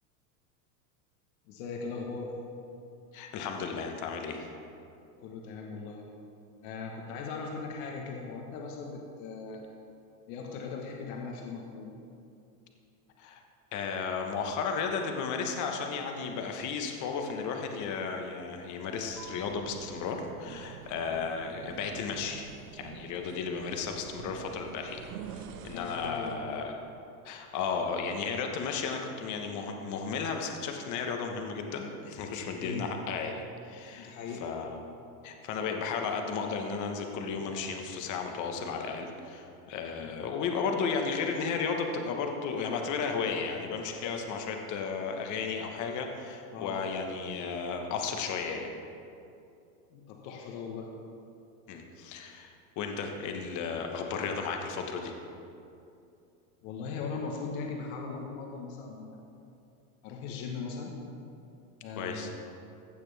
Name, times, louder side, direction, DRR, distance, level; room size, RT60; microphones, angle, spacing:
voice 1, 1.5-2.3 5.2-6.0 6.6-9.6 10.3-12.0 25.7-26.4 32.6-32.9 33.9-34.5 40.0-40.1 46.5-46.8 49.9-50.9 56.6-59.2 60.0-60.9 61.8-62.3, left 4 dB, 65° left, 0 dB, 1.4 m, -39 dB
voice 2, 3.1-4.5 13.2-13.4 13.7-25.0 25.3-26.7 27.2-34.1 34.4-34.8 35.2-48.7 51.7-55.1 62.0-62.3, left 5 dB, 40° left, 3 dB, 1.2 m, -34 dB
sound 1, 19.0-26.5, right 7 dB, 80° right, 0.9 m, -46 dB
15.5 x 6.7 x 3.4 m, 2.6 s
supercardioid pair, 130°, 45 cm